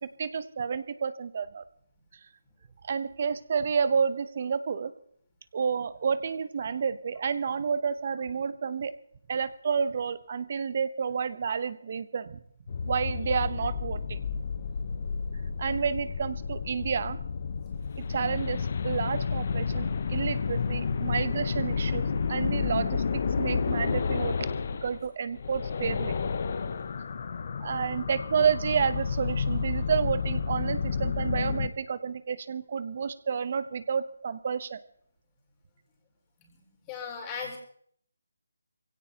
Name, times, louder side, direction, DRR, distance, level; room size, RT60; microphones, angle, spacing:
voice 1, 0.0-1.6 2.8-4.9 5.5-8.9 9.3-12.4 12.8-14.2 15.6-17.2 18.1-26.1 27.6-34.8, right 6 dB, 45° right, 14 dB, 0.8 m, -30 dB
sound 1, 12.7-25.1 25.3-31.7, left 5 dB, 45° left, 0.9 m, -31 dB
voice 2, 36.9-37.6, left 6 dB, 15° left, -1 dB, 3.8 m, -37 dB
23.0 x 16.5 x 2.9 m, 0.63 s
figure-of-eight pair, 165°, 0 cm